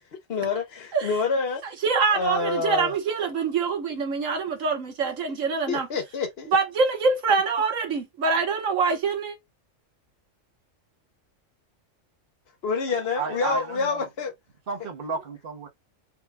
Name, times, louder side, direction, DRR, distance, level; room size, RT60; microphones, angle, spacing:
voice 1, 0.3-1.6 2.1-2.9 5.7-6.5 12.6-14.3, left 4 dB, 55° left, 1.0 m, -27 dB
voice 2, 1.8-5.9 6.5-9.4, right 4 dB, 75° right, 1.5 m, -24 dB
voice 3, 13.1-14.1 14.7-15.7, right 5 dB, 45° right, 1.1 m, -32 dB
4.6 x 2.3 x 3.4 m
omnidirectional pair, 1.3 m